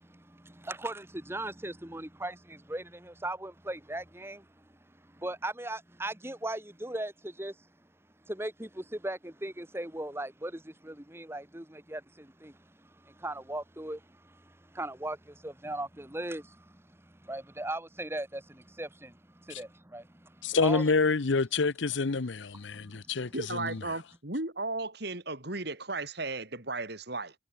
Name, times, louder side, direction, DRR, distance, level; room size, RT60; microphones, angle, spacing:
voice 1, 0.0-7.7 8.2-20.9 22.7-23.3, right 1 dB, 10° right, 1.6 m, -39 dB
voice 2, 20.4-23.8, left 4 dB, 70° left, 0.8 m, -28 dB
voice 3, 23.3-27.3, right 2 dB, 55° right, 3.5 m, -35 dB
head